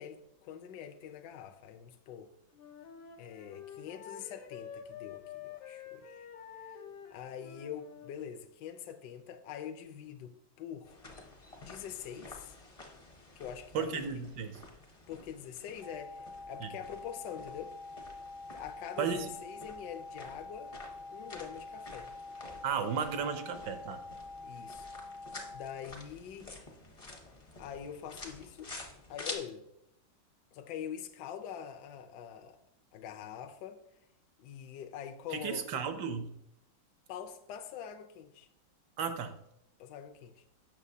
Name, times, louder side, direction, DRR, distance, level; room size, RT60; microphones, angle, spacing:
voice 1, 0.0-2.3 3.2-6.2 6.6-6.8 7.1-11.0 11.6-12.5 13.4-14.1 15.1-17.7 18.5-20.8 21.1-22.1 24.4-24.9 25.5-26.5 27.6-28.7 29.1-29.7 30.5-32.6 32.9-33.8 34.4-35.8 37.1-38.5 39.8-40.4, left 9 dB, 70° left, 1.1 m, -44 dB
Wind instrument woodwind instrument, 2.5-8.2, left 8 dB, 90° left, 1.6 m, -48 dB
sound 1, 10.8-29.4, left 2 dB, 40° left, 0.5 m, -50 dB
voice 2, 13.7-14.6 16.6-16.7 19.0-19.3 22.6-24.0 35.3-36.3 39.0-39.3, right 6 dB, 75° right, 1.2 m, -34 dB
sound 2, 15.8-25.8, left 3 dB, 45° right, 0.4 m, -46 dB
7.4 x 6.3 x 2.7 m
omnidirectional pair, 2.1 m